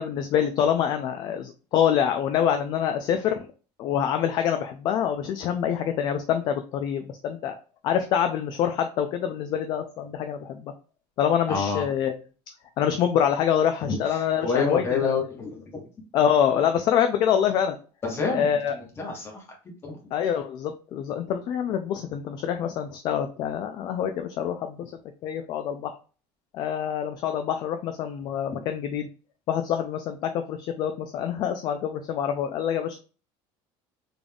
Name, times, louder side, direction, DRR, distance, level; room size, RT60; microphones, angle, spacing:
voice 1, 0.0-3.4 3.8-7.6 7.8-10.7 11.2-12.2 12.8-14.8 16.1-17.8 18.3-18.8 20.1-24.9 25.2-25.9 26.5-29.1 29.5-33.0, left 9 dB, 35° left, 6 dB, 0.3 m, -25 dB
voice 2, 11.5-11.9 14.1-15.8 18.0-19.4 19.8-20.0, left 5 dB, 20° left, 0 dB, 1.1 m, -28 dB
3.8 x 3.4 x 2.3 m, 0.36 s
cardioid pair, 175°, 12 cm